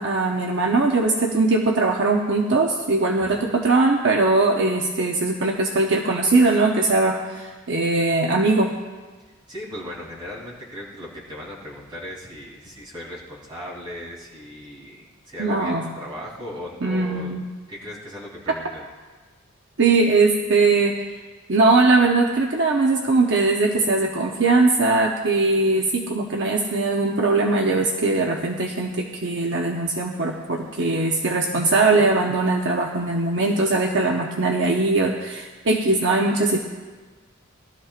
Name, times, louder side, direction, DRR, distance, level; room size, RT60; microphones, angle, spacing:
voice 1, 0.0-8.7 15.4-15.9 16.8-17.4 19.8-20.9 21.5-36.6, right 3 dB, 55° right, 1 dB, 0.8 m, -20 dB
voice 2, 9.5-17.4 17.7-18.8, left 1 dB, 20° right, -5 dB, 3.3 m, -37 dB
20.0 x 12.5 x 2.5 m, 1.3 s
head